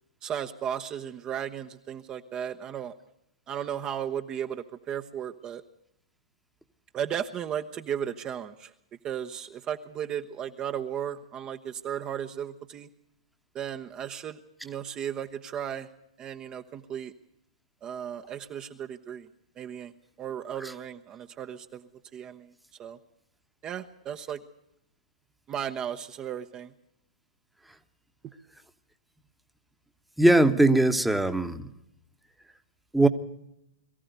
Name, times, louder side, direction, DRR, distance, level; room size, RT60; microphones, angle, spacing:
voice 1, 0.2-2.9 3.5-5.6 6.9-8.7 9.0-12.9 13.5-15.9 16.2-17.1 17.8-19.3 19.6-19.9 20.2-22.5 22.8-23.0 23.6-24.4 25.5-26.7, right 9 dB, 25° right, 6 dB, 1.0 m, -35 dB
voice 2, 30.2-31.7 32.9-33.1, right 1 dB, ahead, 8 dB, 1.3 m, -20 dB
22.5 x 15.0 x 8.1 m, 0.79 s
hypercardioid pair, 115°, 3 cm